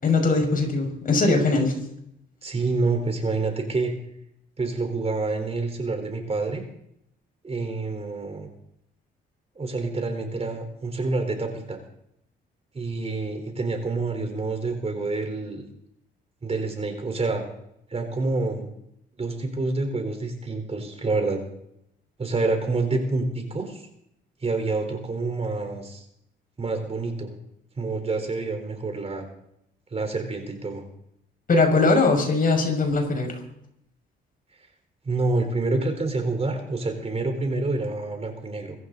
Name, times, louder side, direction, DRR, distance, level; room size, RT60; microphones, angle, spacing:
voice 1, 0.0-1.7 31.5-33.4, left 3 dB, 45° left, 4 dB, 6.1 m, -21 dB
voice 2, 2.4-3.9 4.6-6.6 7.4-8.5 9.6-11.8 12.7-15.6 16.4-17.4 17.9-18.7 19.2-21.4 22.2-23.8 24.4-26.0 26.6-27.3 27.8-29.3 29.9-30.8 35.0-38.8, right 3 dB, 30° right, 5 dB, 4.2 m, -27 dB
24.0 x 14.0 x 4.1 m, 0.75 s
cardioid pair, 90°, 20 cm